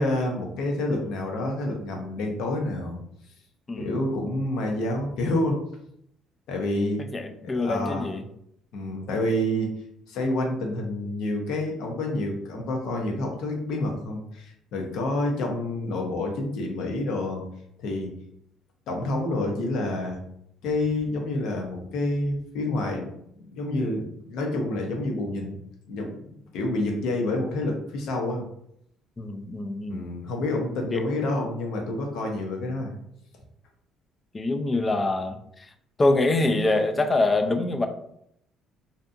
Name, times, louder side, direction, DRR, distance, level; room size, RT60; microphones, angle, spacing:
voice 1, 0.0-3.0 3.8-5.6 6.5-7.0 7.4-8.1 8.7-9.7 10.1-17.4 17.8-18.1 18.9-20.2 20.6-23.1 23.5-25.6 25.9-26.3 26.5-28.5 29.9-33.0, left 1 dB, 75° left, 1 dB, 0.7 m, -28 dB
voice 2, 3.7-4.0 7.1-8.2 29.2-30.1 30.9-31.0 34.3-35.4 36.0-37.9, left 2 dB, 25° left, 6 dB, 0.3 m, -24 dB
2.7 x 2.5 x 2.4 m, 0.74 s
cardioid pair, 105°, 0 cm